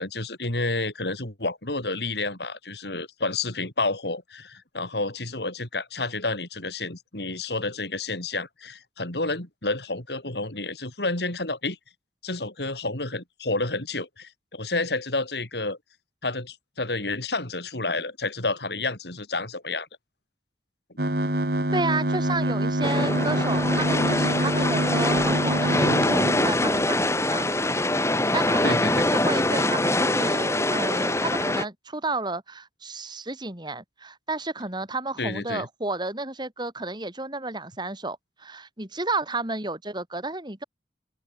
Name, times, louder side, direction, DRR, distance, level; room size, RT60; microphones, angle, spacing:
voice 1, 0.0-11.8 12.2-15.8 16.2-19.9 28.6-29.1 35.2-35.7, left 3 dB, 70° left, 4.3 m, -30 dB
sound 1, 21.0-26.9, right 1 dB, 60° right, 4.3 m, -26 dB
voice 2, 21.7-27.5 27.8-40.6, right 2 dB, 25° right, 4.5 m, -32 dB
sound 2, 22.8-31.6, left 1 dB, 15° left, 6.2 m, -24 dB
open air
head